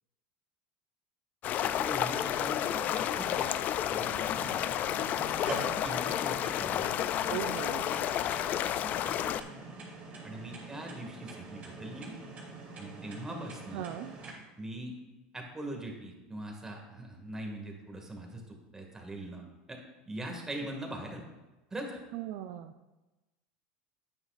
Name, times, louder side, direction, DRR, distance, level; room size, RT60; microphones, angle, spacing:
sound 1, 1.4-9.4, left 11 dB, 45° left, 0.4 m, -31 dB
voice 1, 1.6-3.6 3.9-4.6 5.6-7.1 10.2-12.2 12.8-13.8 14.6-15.0 15.3-19.8 20.0-21.3 21.7-22.0, right 1 dB, 15° right, 2 dB, 1.9 m, -42 dB
sound 2, 4.0-14.3, right 3 dB, 30° right, 2.7 m, -44 dB
voice 2, 7.3-7.9 13.7-14.2 22.1-22.7, right 12 dB, 70° right, 8 dB, 0.4 m, -38 dB
9.8 x 8.9 x 2.4 m, 1.1 s
supercardioid pair, 115°, 4 cm